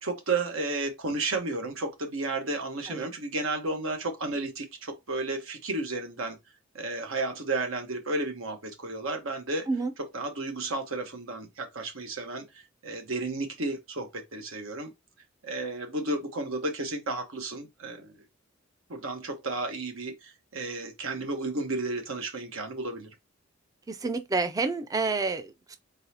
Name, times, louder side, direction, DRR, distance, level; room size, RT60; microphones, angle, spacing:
voice 1, 0.0-6.4 6.7-9.6 10.0-12.4 12.8-14.9 15.4-18.1 18.9-23.1, right 2 dB, 85° right, 1.2 m, -32 dB
voice 2, 23.9-25.8, right 3 dB, 20° right, 0.3 m, -29 dB
4.0 x 3.9 x 2.8 m
head